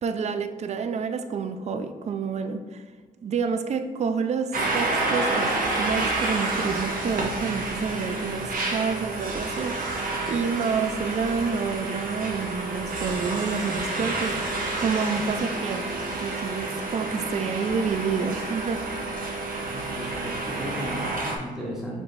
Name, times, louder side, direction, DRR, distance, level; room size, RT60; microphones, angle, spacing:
voice 1, 0.0-2.8 3.2-15.9 16.2-18.9, right 5 dB, 45° right, 9 dB, 0.4 m, -29 dB
sound 1, 4.5-21.4, right 2 dB, 60° right, 0.8 m, -29 dB
voice 2, 19.6-22.0, equal, 5° right, -5 dB, 1.1 m, -35 dB
4.7 x 3.8 x 2.7 m, 1.5 s
cardioid pair, 85°, 16 cm